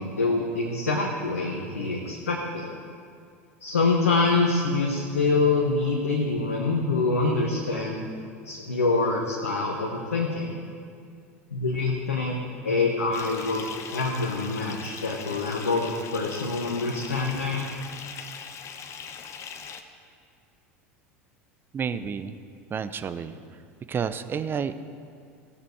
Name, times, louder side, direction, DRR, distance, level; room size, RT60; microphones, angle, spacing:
voice 1, 0.0-2.7 3.6-8.1 8.4-10.5 11.5-12.4 12.6-17.7, left 3 dB, 90° left, -1 dB, 1.0 m, -25 dB
Bathtub (filling or washing) / Fill (with liquid), 13.1-19.8, left 7 dB, 40° left, 0.8 m, -40 dB
voice 2, 21.7-22.4 22.7-23.4 23.9-24.7, right 7 dB, 30° right, 12 dB, 0.6 m, -30 dB
16.0 x 6.9 x 4.6 m, 2.3 s
hypercardioid pair, 80°, 7 cm